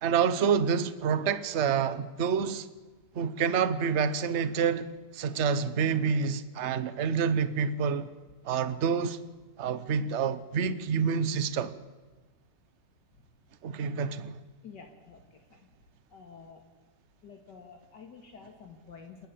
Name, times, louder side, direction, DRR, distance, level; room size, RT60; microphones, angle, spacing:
voice 1, 0.0-2.7 3.1-8.1 8.4-9.2 9.6-11.7 13.6-14.4, right 6 dB, 45° right, 1.1 m, -28 dB
voice 2, 14.6-15.2 15.5-15.7 16.1-16.6 17.2-19.3, left 5 dB, 75° left, 2.4 m, -49 dB
28.0 x 12.0 x 8.5 m
omnidirectional pair, 1.9 m